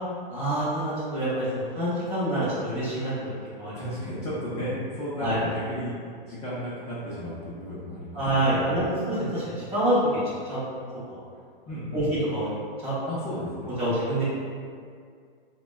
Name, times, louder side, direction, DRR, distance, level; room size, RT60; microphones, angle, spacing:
voice 1, 0.3-3.8 5.2-5.4 8.1-10.0 10.5-10.6 11.9-12.0 12.3-12.5 12.8-12.9 13.8-14.2, right 1 dB, 20° right, -11 dB, 0.7 m, -27 dB
voice 2, 3.7-6.0 6.3-8.2 8.5-8.9 11.7-12.1 13.0-13.8, equal, 15° left, -10 dB, 0.4 m, -34 dB
3.1 x 2.1 x 2.2 m, 2.1 s
hypercardioid pair, 125°, 29 cm